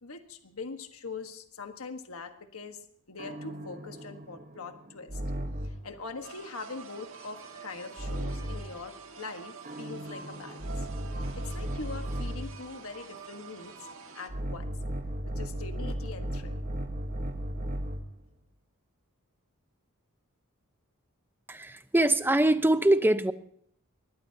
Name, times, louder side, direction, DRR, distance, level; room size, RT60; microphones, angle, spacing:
voice 1, 0.0-5.2 5.6-10.7 11.3-13.9 14.1-14.7 15.2-16.6, left 4 dB, 70° left, 6 dB, 1.5 m, -42 dB
sound 1, 3.2-5.9 8.0-8.8 9.6-12.6 14.3-18.2, equal, 40° right, 1.4 m, -35 dB
sound 2, 6.2-14.3, right 5 dB, 70° right, 2.0 m, -47 dB
voice 2, 21.5-23.3, right 1 dB, 10° right, 9 dB, 0.9 m, -23 dB
23.5 x 20.5 x 2.9 m, 0.64 s
head